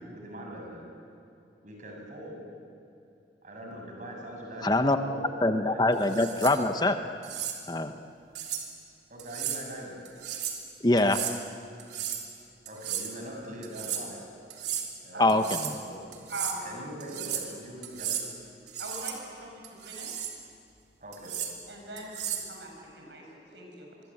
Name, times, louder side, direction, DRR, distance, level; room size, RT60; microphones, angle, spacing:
voice 1, 0.1-0.9 1.6-2.4 3.4-5.8 9.1-10.0 12.7-14.2 15.0-16.2 16.6-18.2 21.0-21.3, equal, 45° right, 0 dB, 7.0 m, -42 dB
voice 2, 4.6-5.0 5.4-7.0 7.7-7.9 10.8-11.2 15.2-15.7, left 2 dB, 25° left, 8 dB, 1.0 m, -24 dB
sound 1, 6.0-6.6 7.2-7.6 8.4-8.7 9.2-9.6 10.1-10.6 11.0-11.4 11.8-12.3 12.7-13.1 13.6-14.0 14.5-14.9 15.3-15.8 16.1-16.6 17.0-17.5 17.8-18.3 18.7-19.2 19.6-20.4 21.1-21.5 22.0-22.5, right 9 dB, 75° right, 3.3 m, -34 dB
voice 3, 16.3-16.7 18.8-20.2 21.7-24.0, right 1 dB, 90° right, 1 dB, 7.4 m, -42 dB
25.0 x 23.5 x 8.7 m, 2.6 s
head